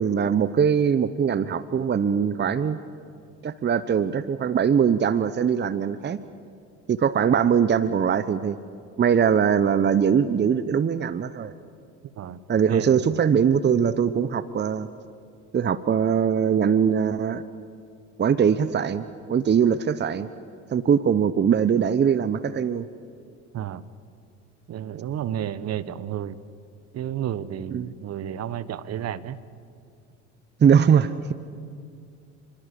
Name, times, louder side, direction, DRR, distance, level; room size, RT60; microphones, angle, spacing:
voice 1, 0.0-2.8 3.4-6.2 6.9-8.6 9.0-11.5 12.5-14.9 15.5-17.4 18.2-20.3 20.7-22.9 27.7-27.9 30.6-31.3, right 7 dB, 30° right, 14 dB, 1.0 m, -21 dB
voice 2, 12.0-13.2 23.5-23.8 24.7-26.4 26.9-29.4, right 10 dB, 50° right, 16 dB, 1.4 m, -32 dB
30.0 x 22.5 x 8.5 m, 2.3 s
hypercardioid pair, 75°, 33 cm